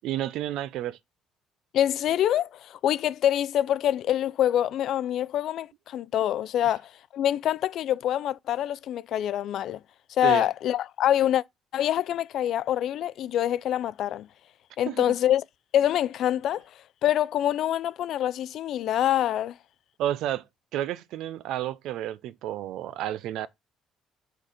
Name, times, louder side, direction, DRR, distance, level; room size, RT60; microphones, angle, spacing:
voice 1, 0.0-1.0 10.2-10.5 14.9-15.0 20.0-20.4 20.7-23.5, right 12 dB, 80° right, 0.5 m, -31 dB
voice 2, 1.7-9.8 10.1-11.4 11.7-14.3 14.8-15.4 15.7-16.6 17.0-19.6, left 11 dB, 65° left, 0.4 m, -25 dB
6.3 x 4.0 x 5.0 m
cardioid pair, 130°, 0 cm